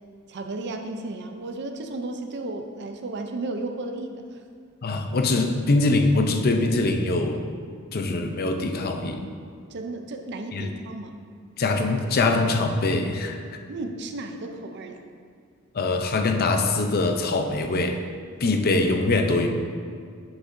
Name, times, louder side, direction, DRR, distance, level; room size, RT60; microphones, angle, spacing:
voice 1, 0.3-4.3 9.7-11.2 13.5-15.0, right 2 dB, 55° right, 5 dB, 0.6 m, -34 dB
voice 2, 4.8-7.4 7.9-9.3 10.5-10.7 11.6-13.4 15.7-18.0 18.4-19.5, left 2 dB, 45° left, 4 dB, 0.6 m, -23 dB
10.0 x 5.8 x 2.6 m, 2.1 s
head